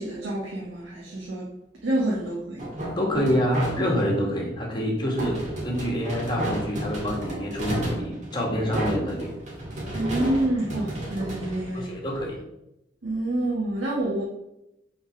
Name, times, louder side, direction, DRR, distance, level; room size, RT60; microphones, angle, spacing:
voice 1, 0.0-1.5 1.8-2.7 9.9-11.9 13.0-14.2, right 1 dB, 90° right, -4 dB, 1.5 m, -27 dB
sound 1, 2.6-4.2 5.2-12.3, right 1 dB, 40° right, 1.9 m, -32 dB
voice 2, 3.0-5.4 5.6-9.3 11.7-12.4, equal, 25° left, -1 dB, 1.8 m, -27 dB
sound 2, 3.1-6.1, equal, 10° right, 2.4 m, -41 dB
5.7 x 4.2 x 6.0 m, 0.86 s
head